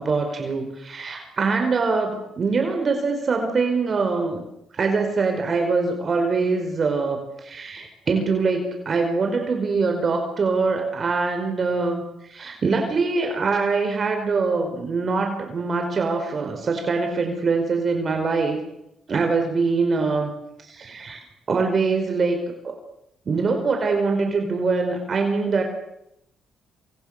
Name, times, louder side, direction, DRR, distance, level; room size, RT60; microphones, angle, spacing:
voice 1, 0.0-4.4 4.7-18.6 19.1-20.3 20.6-22.7 23.3-25.6, right 4 dB, 45° right, 4 dB, 5.1 m, -23 dB
28.0 x 27.5 x 6.8 m, 0.82 s
cardioid pair, 90°, 0 cm